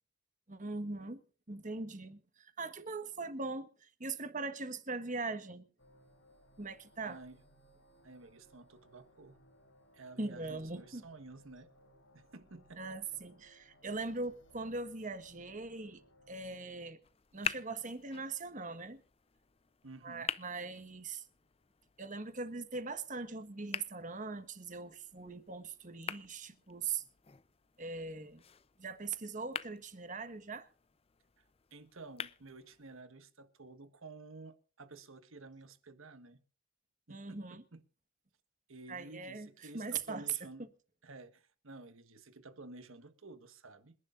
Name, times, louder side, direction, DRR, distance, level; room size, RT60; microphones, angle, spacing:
voice 1, 0.5-1.2 1.5-5.7 6.6-7.2 10.2-11.1 12.8-16.0 16.3-17.0 17.3-19.0 20.0-21.2 22.0-27.0 27.8-28.4 28.8-30.7 37.1-37.6 38.9-40.7, right 4 dB, 35° right, 1.4 m, -41 dB
sound 1, 5.8-16.9, equal, 60° left, 3.1 m, -64 dB
voice 2, 7.0-7.4 8.0-9.4 9.9-11.7 12.1-13.0 19.8-20.3 31.7-36.4 37.1-37.8 38.7-40.7 41.0-43.9, right 3 dB, 75° right, 1.5 m, -52 dB
sound 2, 17.0-33.0, left 7 dB, 30° left, 0.6 m, -47 dB
27.0 x 11.0 x 2.5 m
head